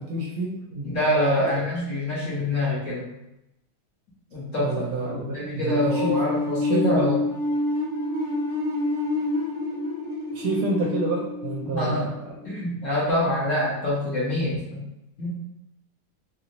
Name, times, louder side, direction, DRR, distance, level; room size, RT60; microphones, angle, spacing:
voice 1, 0.0-0.9 1.4-1.5 4.6-6.2 6.6-7.1 10.3-12.1, right 3 dB, 80° right, -3 dB, 1.6 m, -28 dB
voice 2, 0.9-3.0 4.3-4.7 5.0-7.1 11.6-12.1 12.4-14.8 15.2-15.4, left 1 dB, 50° left, -7 dB, 0.9 m, -25 dB
sound 1, 5.6-12.5, left 2 dB, ahead, 0.6 m, -27 dB
4.3 x 2.0 x 2.7 m, 0.88 s
omnidirectional pair, 2.3 m